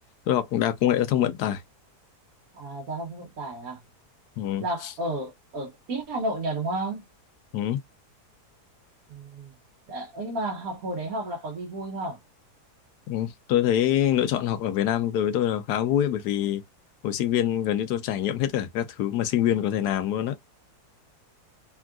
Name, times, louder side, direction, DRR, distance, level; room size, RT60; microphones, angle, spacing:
voice 1, 0.3-1.6 4.4-4.6 7.5-7.8 13.1-16.6 17.0-20.4, left 11 dB, 85° left, 1.2 m, -25 dB
voice 2, 2.5-3.8 4.6-7.0 9.1-9.5 9.9-12.2, right 1 dB, 65° right, 1.2 m, -32 dB
3.6 x 2.3 x 2.3 m
omnidirectional pair, 1.7 m